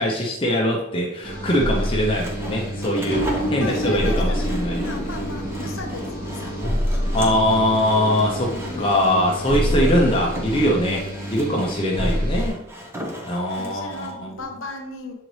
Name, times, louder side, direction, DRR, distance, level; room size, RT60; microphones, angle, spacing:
voice 1, 0.0-4.8 7.1-12.6 13.3-14.4, equal, 25° left, -2 dB, 0.7 m, -22 dB
sound 1, 1.2-12.5, equal, 45° right, 1.9 m, -27 dB
Sawing, 1.7-14.2, equal, 10° right, 0.8 m, -38 dB
voice 2, 3.5-6.6 8.4-9.1 9.6-10.0 13.5-15.1, left 2 dB, 70° left, 3 dB, 1.1 m, -36 dB
7.7 x 3.9 x 3.1 m, 0.92 s
head